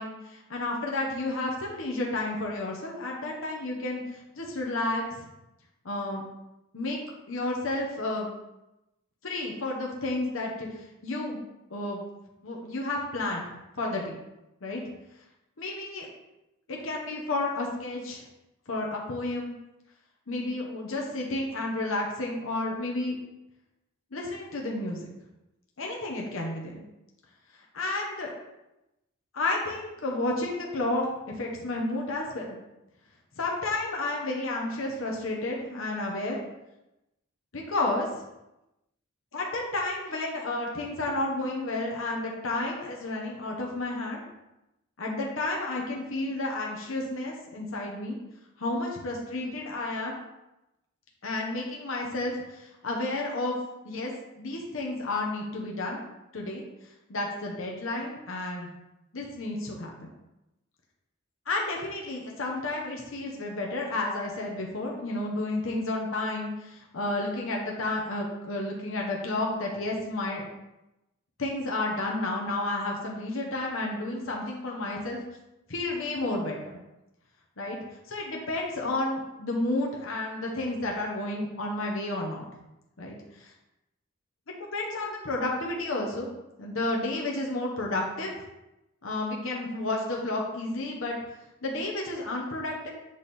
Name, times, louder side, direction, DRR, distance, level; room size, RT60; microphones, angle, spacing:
voice 1, 0.0-5.3 5.8-6.2 6.7-7.0 7.3-8.3 9.2-11.4 11.7-12.0 12.4-13.5 13.8-14.2 14.6-14.8 15.6-16.1 16.7-18.2 18.7-19.5 20.3-23.2 24.1-25.0 25.8-26.8 27.7-28.3 29.3-31.1 31.4-32.5 33.4-36.4 37.5-38.1 39.3-44.2 45.0-48.2 48.6-50.1 51.2-53.6 53.8-54.1 54.4-56.0 56.3-56.6 57.1-58.7 59.1-59.9 61.5-70.5 71.4-75.2 75.7-76.8 77.6-77.8 78.1-82.5 83.0-83.5 84.6-86.3 86.6-88.3 89.0-91.2 91.6-92.9, left 2 dB, 75° left, -1 dB, 1.1 m, -31 dB
7.9 x 3.5 x 4.3 m, 0.94 s
head